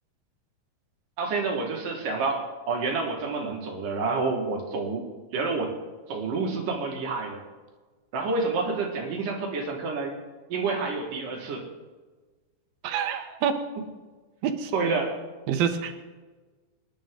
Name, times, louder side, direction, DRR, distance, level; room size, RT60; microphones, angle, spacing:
voice 1, 1.2-5.0 5.3-5.7 6.1-7.4 8.1-10.2 10.5-11.7 14.7-15.2, right 4 dB, 65° right, 1 dB, 3.7 m, -28 dB
voice 2, 12.8-13.6 14.4-14.7 15.5-15.9, right 8 dB, 80° right, 7 dB, 3.0 m, -26 dB
26.5 x 11.0 x 3.9 m, 1.3 s
omnidirectional pair, 4.2 m